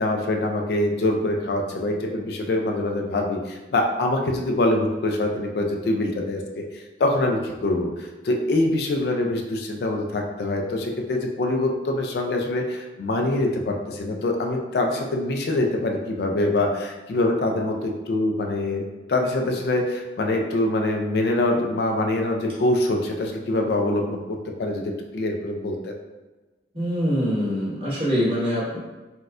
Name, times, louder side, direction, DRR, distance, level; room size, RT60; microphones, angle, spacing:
voice 1, 0.0-25.9, left 2 dB, 65° left, 2 dB, 0.4 m, -24 dB
voice 2, 26.7-28.8, equal, 30° right, -9 dB, 1.2 m, -24 dB
4.1 x 2.3 x 2.4 m, 1.2 s
head